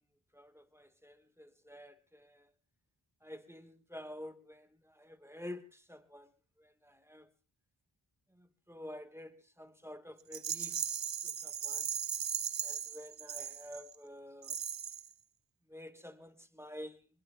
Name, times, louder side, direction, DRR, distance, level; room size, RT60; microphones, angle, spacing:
voice 1, 0.3-2.5 3.2-6.3 6.6-7.3 8.3-10.9 11.2-11.9 12.6-14.6 15.7-17.1, left 1 dB, 5° right, 8 dB, 1.4 m, -49 dB
Rattle, 10.3-14.0 14.4-15.1, right 8 dB, 60° right, 0.7 m, -38 dB
28.0 x 20.5 x 2.2 m, 0.38 s
wide cardioid pair, 45°, 50 cm